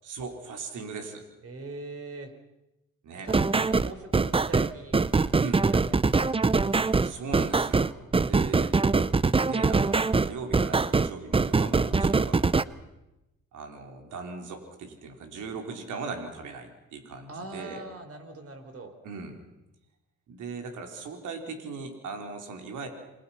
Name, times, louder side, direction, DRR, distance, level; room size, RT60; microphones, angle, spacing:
voice 1, 0.0-1.3 3.0-3.3 5.4-5.6 7.0-8.7 9.4-12.6 13.5-17.8 19.0-19.3 20.3-22.9, right 4 dB, 80° right, 4 dB, 4.2 m, -39 dB
voice 2, 1.4-2.3 3.2-6.3 17.3-18.9, right 3 dB, 50° right, 8 dB, 4.5 m, -42 dB
sound 1, 3.3-12.6, right 4 dB, 20° right, 0.7 m, -23 dB
28.5 x 22.0 x 5.8 m, 0.95 s
cardioid pair, 90°, 30 cm